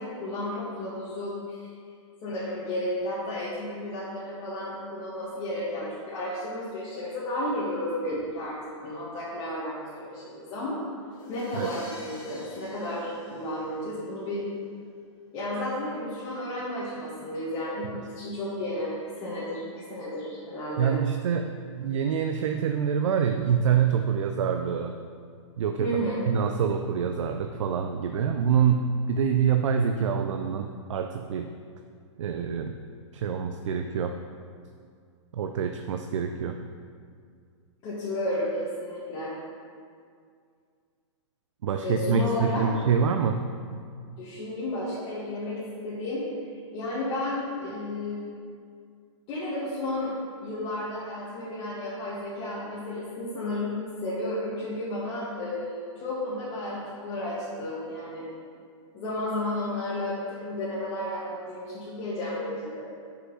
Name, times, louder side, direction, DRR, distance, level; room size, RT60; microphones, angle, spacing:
voice 1, 0.0-1.7 2.2-8.5 8.8-10.8 11.3-14.4 15.3-18.9 19.2-20.9 25.8-26.3 37.8-39.3 41.8-42.6 44.2-46.2 46.7-48.3 49.3-50.1 50.4-53.7 54.0-58.3 58.9-62.8, left 1 dB, 30° left, -10 dB, 1.8 m, -32 dB
sound 1, 11.1-14.1, left 1 dB, 50° left, 2.1 m, -47 dB
voice 2, 20.8-25.0 25.6-26.0 26.3-31.5 32.2-32.7 33.1-34.2 35.3-36.6 41.6-43.5, right 7 dB, 75° right, 6 dB, 0.5 m, -26 dB
6.3 x 5.7 x 5.6 m, 2.2 s
hypercardioid pair, 150°, 16 cm